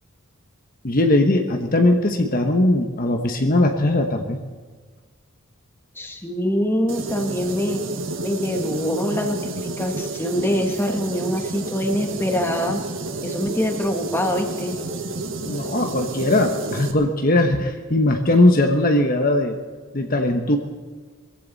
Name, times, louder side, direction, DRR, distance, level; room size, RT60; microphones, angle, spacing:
voice 1, 0.8-4.4 15.4-19.6 19.9-20.6, left 1 dB, 40° left, 4 dB, 1.2 m, -19 dB
voice 2, 5.9-7.8 8.2-12.8 13.2-14.8, equal, 10° left, 3 dB, 1.5 m, -24 dB
sound 1, 6.9-16.9, right 2 dB, 65° right, 1.6 m, -30 dB
21.5 x 15.5 x 4.1 m, 1.5 s
head